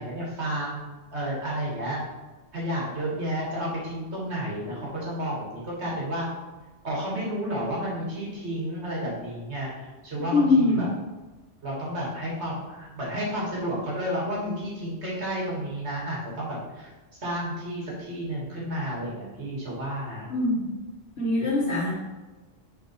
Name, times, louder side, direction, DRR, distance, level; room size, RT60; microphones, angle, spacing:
voice 1, 0.0-2.0 2.5-6.3 6.8-10.9 11.6-16.9 17.2-20.3, equal, 75° right, -5 dB, 2.4 m, -31 dB
voice 2, 10.3-10.9 20.3-20.7 21.2-21.9, left 2 dB, 70° left, -2 dB, 1.4 m, -22 dB
6.6 x 4.4 x 4.5 m, 1.2 s
omnidirectional pair, 1.2 m